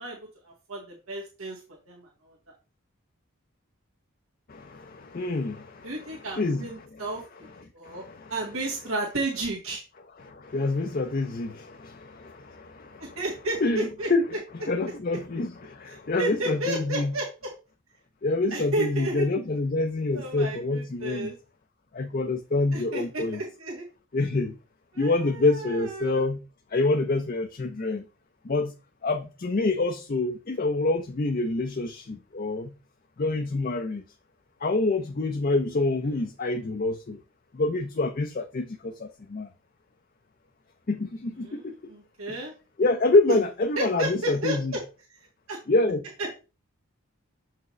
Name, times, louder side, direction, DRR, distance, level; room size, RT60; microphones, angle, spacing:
voice 1, 0.0-1.6 1.9-2.3 5.8-8.0 8.3-9.8 13.0-14.7 15.9-17.5 18.5-19.2 20.1-21.3 22.7-23.8 24.9-26.2 41.4-41.6 41.9-42.5 43.8-44.6 45.5-45.6, right 2 dB, 85° right, 1.6 m, -33 dB
voice 2, 4.5-7.0 7.8-8.3 10.2-13.2 13.6-14.3 14.7-17.1 18.2-21.3 21.9-23.4 24.1-24.5 25.0-26.4 26.7-28.0 28.4-28.7 29.0-32.7 33.2-34.0 34.6-37.2 37.5-39.5 40.9-41.9 42.8-44.8 45.7-46.0, left 2 dB, 40° left, 0.5 m, -27 dB
7.0 x 4.6 x 3.1 m
head